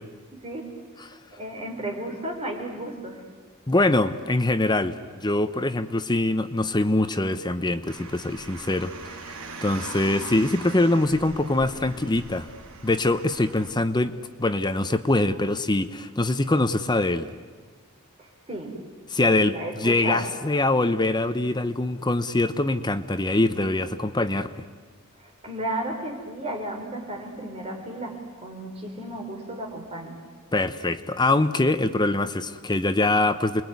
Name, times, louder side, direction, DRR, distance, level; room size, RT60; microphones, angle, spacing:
voice 1, 0.3-0.7 1.3-3.2 18.2-18.8 19.2-20.3 25.2-30.2, right 1 dB, 30° right, 1 dB, 4.5 m, -34 dB
voice 2, 3.7-9.2 9.6-12.5 12.8-14.1 14.4-17.3 19.1-24.6 30.5-33.6, left 2 dB, 20° left, 11 dB, 0.8 m, -23 dB
Car, 7.9-13.7, right 3 dB, 70° right, 2.4 m, -41 dB
28.5 x 22.0 x 9.5 m, 1.4 s
head